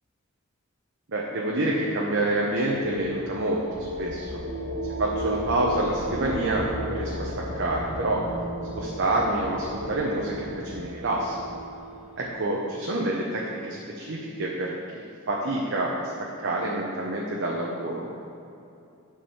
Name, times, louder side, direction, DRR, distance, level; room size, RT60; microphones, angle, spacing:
voice 1, 1.1-4.4 5.0-8.2 8.8-11.4 12.2-14.7 15.3-18.1, right 2 dB, 55° right, -3 dB, 1.0 m, -27 dB
sound 1, 2.1-12.6, equal, 75° right, 1.9 m, -34 dB
8.9 x 4.9 x 7.1 m, 2.6 s
head